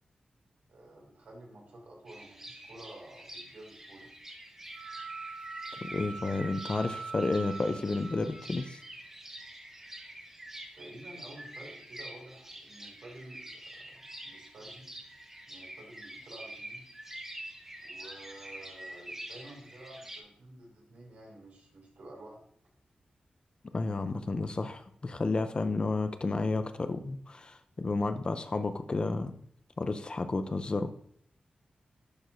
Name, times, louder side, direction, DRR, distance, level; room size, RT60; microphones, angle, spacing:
voice 1, 0.7-4.1 10.7-14.9 15.5-16.9 17.8-22.5, right 1 dB, 80° right, -1 dB, 2.5 m, -51 dB
sound 1, 2.1-20.2, right 1 dB, 15° right, 1.1 m, -47 dB
sound 2, 4.7-8.8, right 4 dB, 55° right, 1.5 m, -43 dB
voice 2, 5.8-8.8 23.7-29.3 29.8-30.9, left 3 dB, 35° left, 9 dB, 0.5 m, -31 dB
11.0 x 4.6 x 2.6 m, 0.63 s
wide cardioid pair, 115°, 3 cm